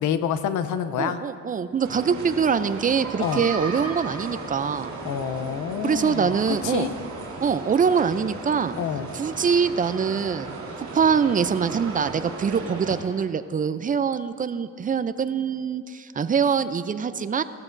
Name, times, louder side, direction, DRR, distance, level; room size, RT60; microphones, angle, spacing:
voice 1, 0.0-1.2 3.2-3.5 5.0-6.9 8.8-9.1, left 8 dB, 90° left, 12 dB, 0.7 m, -27 dB
voice 2, 1.0-4.9 5.8-6.9 7.4-8.8 9.1-10.5 10.8-17.4, right 6 dB, 30° right, 13 dB, 0.4 m, -24 dB
sound 1, 1.8-13.0, right 3 dB, 70° right, 3.3 m, -36 dB
17.0 x 13.5 x 2.6 m, 2.3 s
cardioid pair, 105°, 30 cm